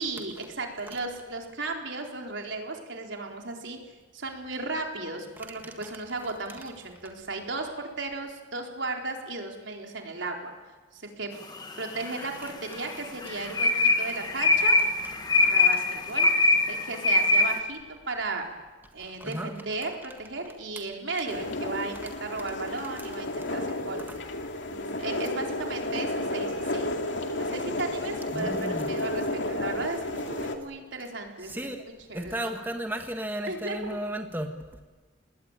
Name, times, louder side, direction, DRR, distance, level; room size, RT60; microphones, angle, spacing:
voice 1, 0.0-3.8 4.1-10.5 10.9-11.3 11.8-14.8 15.3-18.5 18.9-24.0 24.7-26.9 27.3-31.7 32.1-32.3 33.5-34.0, right 3 dB, 80° right, 2 dB, 4.1 m, -35 dB
voice 2, 5.4-6.0 15.4-15.5 19.2-19.5 24.1-24.2 28.3-28.9 31.4-31.9 32.1-34.5, right 1 dB, 10° right, 4 dB, 1.5 m, -34 dB
sound 1, 11.6-12.3 12.7-17.6, left 3 dB, 20° left, 1.6 m, -23 dB
sound 2, 21.3-30.6, left 1 dB, 75° left, 2.5 m, -32 dB
28.0 x 20.5 x 9.0 m, 1.3 s
head